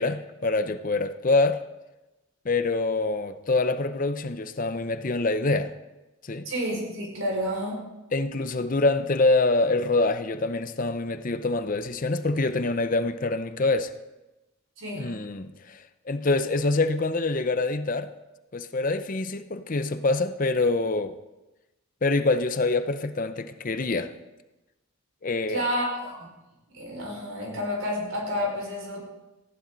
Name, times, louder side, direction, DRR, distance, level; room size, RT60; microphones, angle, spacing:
voice 1, 0.0-1.6 2.4-5.7 6.2-6.5 8.1-13.9 14.9-18.1 18.5-21.2 22.0-24.1 25.2-25.6, left 3 dB, 40° left, 0.6 m, -25 dB
voice 2, 6.5-7.8 14.8-15.1 25.5-26.3 26.7-29.0, equal, 75° right, 5.4 m, -30 dB
19.0 x 14.5 x 4.0 m
head